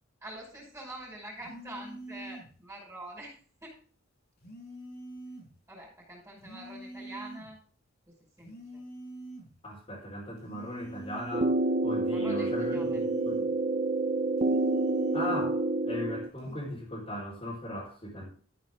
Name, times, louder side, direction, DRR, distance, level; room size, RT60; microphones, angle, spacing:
voice 1, 0.2-3.4 3.6-3.8 5.7-7.6 8.1-8.8 12.1-13.0, right 1 dB, 10° right, -4 dB, 5.6 m, -45 dB
sound 1, 1.4-2.6 4.4-5.6 6.4-7.6 8.4-9.6 10.4-11.6 12.4-13.6 14.4-15.6 16.4-16.7, right 1 dB, 55° left, 5.3 m, -45 dB
voice 2, 9.6-11.5 11.8-13.4 15.1-18.3, equal, 30° left, -5 dB, 4.7 m, -38 dB
sound 2, 11.3-16.3, right 2 dB, 35° right, 0.5 m, -28 dB
13.5 x 9.6 x 3.7 m, 0.40 s
head